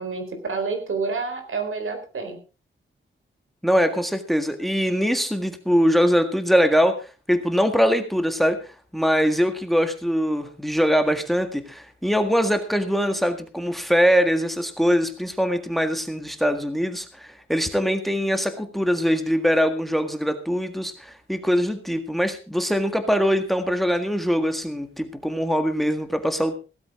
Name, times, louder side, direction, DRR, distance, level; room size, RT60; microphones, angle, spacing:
voice 1, 0.0-2.4, right 4 dB, 80° right, 7 dB, 4.2 m, -28 dB
voice 2, 3.6-8.6 8.9-26.6, equal, ahead, 7 dB, 1.7 m, -22 dB
16.5 x 13.5 x 3.7 m, 0.32 s
wide cardioid pair, 140°, 21 cm